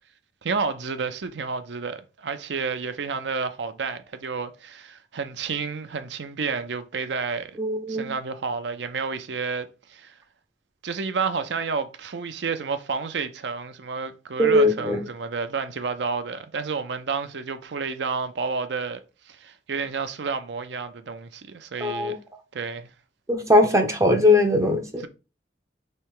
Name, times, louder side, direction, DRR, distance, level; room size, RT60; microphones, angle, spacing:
voice 1, 0.4-7.6 7.9-10.1 10.8-19.0 19.3-22.2 22.5-22.9, right 5 dB, 75° right, 0.6 m, -30 dB
voice 2, 7.6-8.1 14.4-15.0 21.8-22.1 23.3-25.0, left 1 dB, 15° right, 0.4 m, -20 dB
3.3 x 3.3 x 4.7 m
head